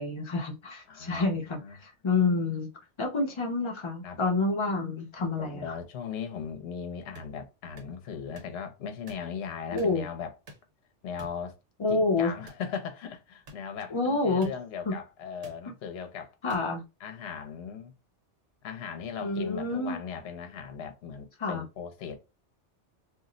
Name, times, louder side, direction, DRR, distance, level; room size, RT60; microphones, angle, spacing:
voice 1, 0.0-2.7 3.0-5.8 9.7-10.0 11.8-12.3 13.9-14.5 14.9-15.0 16.4-16.8 19.2-20.0 21.4-21.6, left 3 dB, 45° left, 0.4 m, -28 dB
voice 2, 0.9-1.2 1.5-1.7 4.0-4.2 5.2-10.3 11.0-11.5 11.9-16.3 17.0-17.9 18.6-22.2, left 7 dB, 65° left, 0.8 m, -38 dB
sound 1, 7.2-7.3 7.8-7.9 8.3-8.5 9.1-9.3 9.8-10.0 10.5-10.7 11.2-11.4 12.5-12.7 13.5-13.6 14.4-14.5 15.4-15.6 16.5-16.6, right 1 dB, 70° right, 1.2 m, -47 dB
2.5 x 2.0 x 3.7 m
omnidirectional pair, 1.2 m